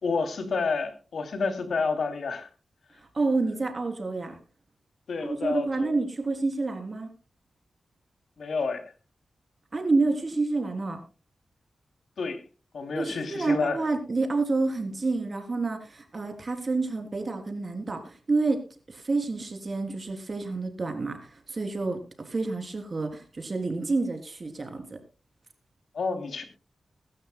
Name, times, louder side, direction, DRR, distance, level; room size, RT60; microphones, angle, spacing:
voice 1, 0.0-2.5 5.1-5.9 8.4-8.8 12.2-12.4 12.7-13.8 25.9-26.4, left 4 dB, 70° left, 7 dB, 2.9 m, -29 dB
voice 2, 3.1-4.4 5.2-7.1 9.7-11.0 12.9-18.6 18.9-24.9, right 3 dB, 40° right, 5 dB, 3.4 m, -28 dB
23.0 x 12.5 x 2.2 m, 0.34 s
wide cardioid pair, 120°, 0 cm